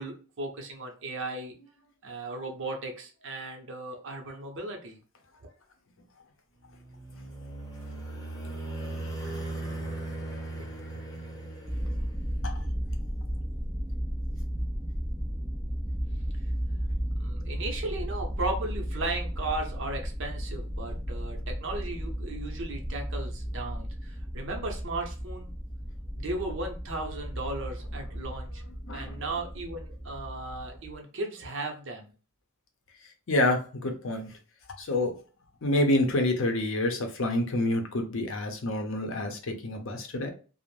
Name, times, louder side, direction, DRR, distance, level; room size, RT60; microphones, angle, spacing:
voice 1, 0.0-1.5 2.0-5.0 5.4-5.5 17.2-25.5 26.1-28.6 28.9-32.1, right 2 dB, 60° right, 3 dB, 0.7 m, -36 dB
sound 1, 6.7-12.5, right 2 dB, 15° left, 0.7 m, -38 dB
sound 2, 11.7-31.0, equal, 5° right, 0.3 m, -34 dB
voice 2, 28.8-29.2 33.3-34.3 34.8-35.1 35.6-40.3, left 1 dB, 60° left, 5 dB, 0.6 m, -28 dB
2.5 x 2.0 x 3.1 m, 0.36 s
head